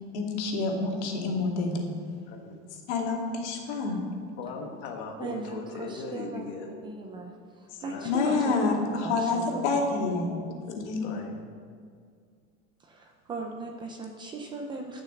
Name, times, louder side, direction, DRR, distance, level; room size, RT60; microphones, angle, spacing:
voice 1, 0.1-1.9 2.9-4.0 8.0-10.4 10.8-11.1, left 3 dB, 75° left, 0 dB, 2.6 m, -28 dB
voice 2, 4.4-6.7 7.7-8.8 10.4-11.4, left 4 dB, 35° left, 1 dB, 1.2 m, -40 dB
voice 3, 5.2-6.5 6.8-7.3 7.8-8.7 9.0-9.6 9.9-10.2 12.8-15.0, right 3 dB, 15° right, 2 dB, 0.5 m, -38 dB
13.0 x 6.5 x 7.6 m, 2.1 s
supercardioid pair, 180°, 34 cm